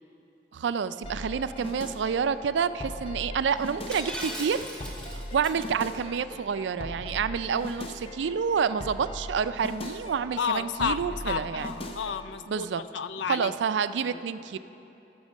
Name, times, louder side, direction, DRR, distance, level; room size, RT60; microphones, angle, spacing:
voice 1, 0.5-4.7 5.1-11.7 12.5-12.8 13.3-14.6, right 6 dB, 85° right, 13 dB, 0.4 m, -28 dB
sound 1, 1.0-12.3, left 1 dB, 30° left, 0.6 m, -40 dB
Shatter, 3.9-5.7, equal, 5° left, 1.0 m, -38 dB
voice 2, 10.4-12.7 12.9-13.5 14.1-14.2, left 7 dB, 85° left, 13 dB, 0.4 m, -31 dB
14.5 x 6.2 x 6.4 m, 2.9 s
head